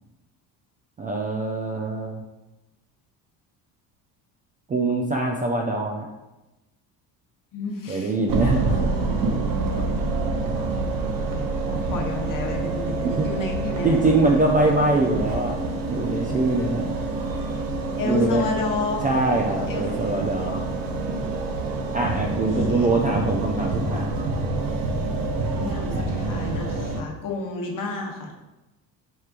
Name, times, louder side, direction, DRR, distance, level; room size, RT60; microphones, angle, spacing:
voice 1, 1.0-2.2 4.7-6.1 7.9-8.9 10.0-10.1 13.0-13.3 13.8-15.6 15.9-16.8 18.0-18.5 19.0-20.6 21.9-24.2, right 2 dB, 20° right, 0 dB, 0.3 m, -23 dB
voice 2, 7.5-8.1 8.7-8.8 11.3-14.0 18.0-19.1 19.7-19.8 22.7-22.9 25.5-28.3, left 3 dB, 40° left, 1 dB, 1.0 m, -31 dB
sound 1, 8.3-27.0, right 3 dB, 45° right, 0.8 m, -27 dB
4.4 x 3.3 x 2.5 m, 1.0 s
hypercardioid pair, 65°, 48 cm